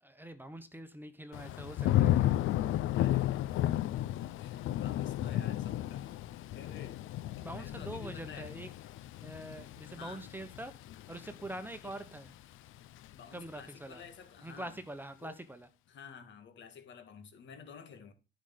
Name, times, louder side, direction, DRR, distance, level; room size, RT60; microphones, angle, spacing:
voice 1, 0.0-2.4 7.4-8.7 9.2-12.3 13.3-14.0 14.4-15.7, right 1 dB, 10° right, 1.1 m, -44 dB
Thunder / Rain, 1.3-12.3 12.7-13.1, left 13 dB, 85° left, 0.5 m, -33 dB
voice 2, 2.9-3.7 4.2-6.2 6.5-7.0 7.5-8.6 9.9-10.3 11.8-11.9 13.1-14.8 15.2-15.4 15.9-18.1, left 6 dB, 65° left, 2.1 m, -51 dB
10.0 x 5.1 x 5.9 m
cardioid pair, 90°, 20 cm